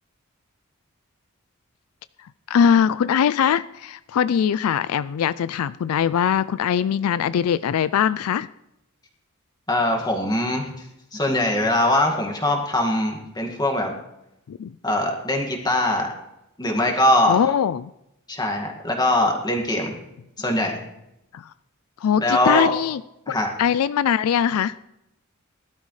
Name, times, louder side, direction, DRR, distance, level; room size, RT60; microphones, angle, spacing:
voice 1, 2.5-8.5 14.5-14.7 17.3-17.9 21.3-21.4 22.0-23.0 23.3-24.7, left 8 dB, 85° left, 16 dB, 0.4 m, -21 dB
voice 2, 9.7-10.7 11.1-13.9 14.8-16.1 16.6-17.4 18.3-20.0 20.4-20.8 22.2-22.7 23.3-23.5, left 1 dB, 20° left, 2 dB, 2.0 m, -22 dB
19.0 x 12.0 x 3.2 m, 0.86 s
head